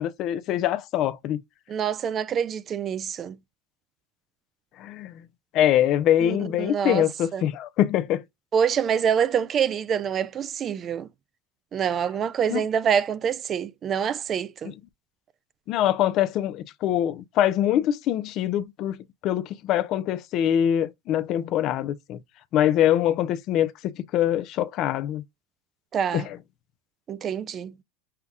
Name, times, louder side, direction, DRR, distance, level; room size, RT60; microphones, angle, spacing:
voice 1, 0.0-1.4 4.8-5.2 5.5-8.2 12.5-12.6 14.6-14.7 15.7-22.2 22.5-25.2 26.1-26.4, left 11 dB, 50° left, 0.5 m, -24 dB
voice 2, 1.7-3.4 6.2-7.1 7.3-7.4 8.5-11.1 11.7-14.7 25.9-26.3 27.1-27.7, right 8 dB, 35° right, 0.4 m, -26 dB
5.6 x 2.3 x 3.5 m
supercardioid pair, 110°, 0 cm